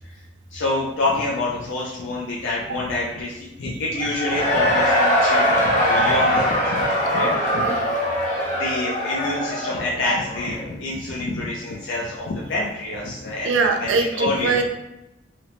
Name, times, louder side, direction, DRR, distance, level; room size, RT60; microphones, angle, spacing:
voice 1, 0.5-6.9 7.1-7.7 8.3-14.6, left 2 dB, 85° left, -4 dB, 0.4 m, -27 dB
Cheering / Crowd, 4.0-10.7, equal, 40° left, 0.7 m, -21 dB
voice 2, 7.5-7.9 10.1-10.2 13.4-14.6, right 4 dB, 80° right, 4 dB, 0.4 m, -22 dB
2.8 x 2.1 x 2.9 m, 0.91 s
head